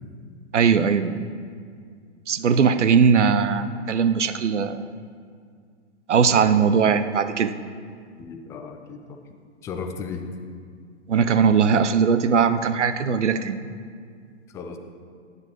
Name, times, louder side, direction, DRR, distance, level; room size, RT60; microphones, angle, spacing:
voice 1, 0.5-1.2 2.3-4.8 6.1-7.5 11.1-13.6, right 6 dB, 80° right, 11 dB, 0.7 m, -19 dB
voice 2, 8.2-9.2 9.6-10.2 14.5-14.8, left 5 dB, 10° left, 5 dB, 0.4 m, -35 dB
15.0 x 9.6 x 3.0 m, 2.1 s
figure-of-eight pair, 120°, 35 cm